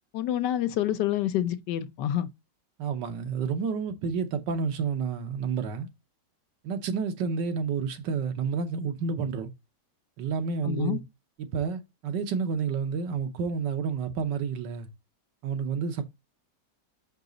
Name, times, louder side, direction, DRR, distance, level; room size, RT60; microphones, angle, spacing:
voice 1, 0.1-2.3 10.6-11.0, left 11 dB, 75° left, 1.3 m, -27 dB
voice 2, 2.8-5.9 6.6-9.5 10.2-11.0 11.4-14.9 15.4-16.0, right 6 dB, 80° right, 1.6 m, -30 dB
5.8 x 5.3 x 3.9 m
omnidirectional pair, 1.9 m